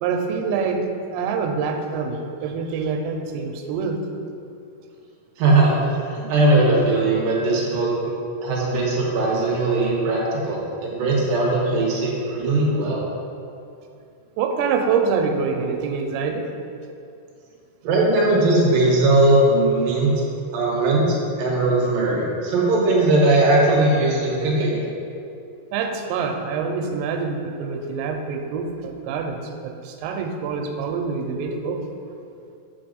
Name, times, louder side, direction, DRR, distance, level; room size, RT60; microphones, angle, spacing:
voice 1, 0.0-0.8 1.1-4.0 14.4-16.5 25.7-31.8, right 5 dB, 90° right, 4 dB, 2.9 m, -25 dB
voice 2, 5.4-5.7 6.1-8.1 8.4-13.0 17.8-20.1 20.5-24.8, right 2 dB, 70° right, -3 dB, 2.4 m, -19 dB
7.8 x 4.6 x 5.1 m, 2.5 s
omnidirectional pair, 5.0 m